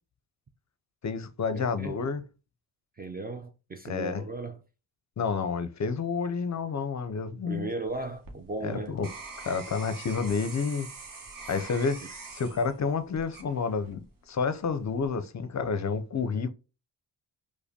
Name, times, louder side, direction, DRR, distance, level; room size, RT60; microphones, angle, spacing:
voice 1, 1.0-2.2 3.8-4.2 5.2-7.7 8.6-9.1 9.4-10.9 11.5-12.0 12.3-16.5, left 5 dB, 35° left, 0.5 m, -30 dB
voice 2, 1.5-2.0 3.0-4.6 7.3-9.0 11.4-11.6 12.0-12.1, right 2 dB, 20° right, 0.4 m, -37 dB
sound 1, 7.9-14.1 14.6-15.1, right 3 dB, 40° right, 1.1 m, -44 dB
4.8 x 2.1 x 2.7 m
supercardioid pair, 45°, 48 cm